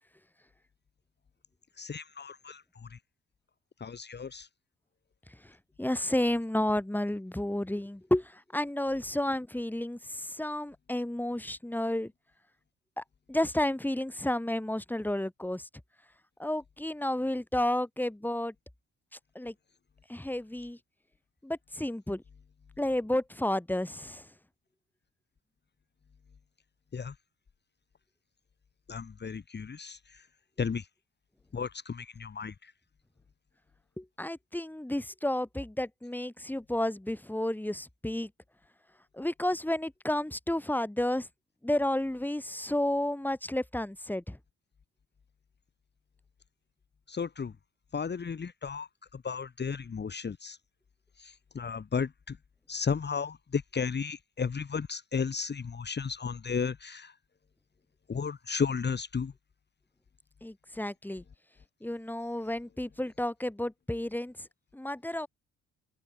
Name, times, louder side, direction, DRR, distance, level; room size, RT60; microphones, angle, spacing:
voice 1, 1.8-2.6 2.9-3.0 3.8-4.5 26.9-27.1 28.9-30.0 30.6-30.9 31.5-32.5 47.1-47.5 47.9-48.9 49.2-50.6 51.2-52.4 52.7-57.1 58.1-59.3, left 6 dB, 35° left, 2.0 m, -34 dB
voice 2, 5.8-12.1 13.0-13.1 13.3-15.6 16.4-18.5 19.4-19.5 20.1-20.8 21.4-22.2 22.8-24.2 34.0-38.3 39.2-41.3 41.6-44.4 60.4-61.2 61.8-64.3 64.7-65.3, left 1 dB, 5° left, 4.1 m, -31 dB
cardioid pair, 90°, 30 cm